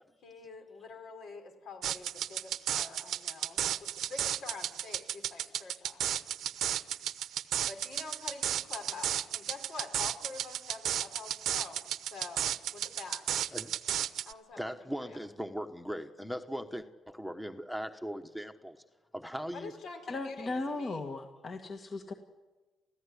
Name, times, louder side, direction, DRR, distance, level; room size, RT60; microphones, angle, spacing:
voice 1, 0.2-6.0 7.7-13.2 14.3-15.2 19.5-21.0, left 4 dB, 70° left, 4 dB, 5.4 m, -46 dB
sound 1, 1.8-14.3, right 11 dB, 75° right, 0.9 m, -34 dB
voice 2, 14.6-18.8 19.1-19.7, equal, 5° left, 7 dB, 1.3 m, -39 dB
voice 3, 20.1-22.1, left 3 dB, 40° left, 4 dB, 1.9 m, -37 dB
29.5 x 15.5 x 10.0 m, 1.3 s
cardioid pair, 90°, 0 cm